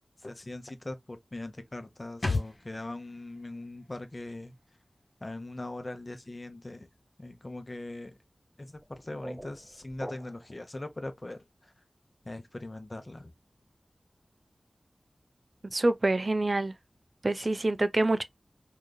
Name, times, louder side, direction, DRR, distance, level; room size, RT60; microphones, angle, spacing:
voice 1, 0.2-4.5 5.2-6.9 7.2-8.2 8.6-11.7 12.2-13.3 17.4-17.5, left 2 dB, 40° left, 0.8 m, -41 dB
sound 1, 2.2-5.7 6.0-6.1, left 3 dB, 60° left, 1.2 m, -38 dB
sound 2, 8.7-10.6, equal, 10° right, 0.6 m, -45 dB
voice 2, 15.7-16.7 17.2-18.2, right 2 dB, 50° right, 0.4 m, -26 dB
3.7 x 3.0 x 2.2 m
wide cardioid pair, 50°, 0 cm